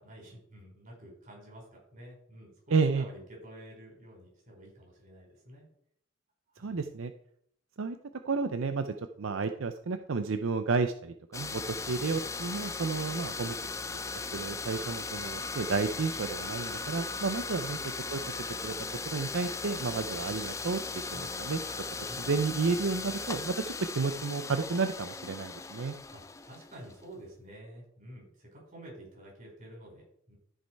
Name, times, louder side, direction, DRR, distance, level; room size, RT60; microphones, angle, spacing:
voice 1, 0.0-5.7 6.5-6.9 20.0-20.1 21.1-21.3 21.9-22.3 26.1-30.4, right 1 dB, 40° right, -1 dB, 4.4 m, -50 dB
voice 2, 2.7-3.0 6.6-7.1 7.8-8.0 8.2-13.6 14.3-17.8 18.1-18.2 18.6-18.7 19.1-20.8 21.1-21.6 22.0-23.6 24.0-26.0, right 4 dB, 70° right, 8 dB, 0.5 m, -31 dB
sound 1, 11.3-27.0, left 4 dB, 15° left, 0.4 m, -38 dB
13.5 x 5.3 x 4.5 m, 0.68 s
head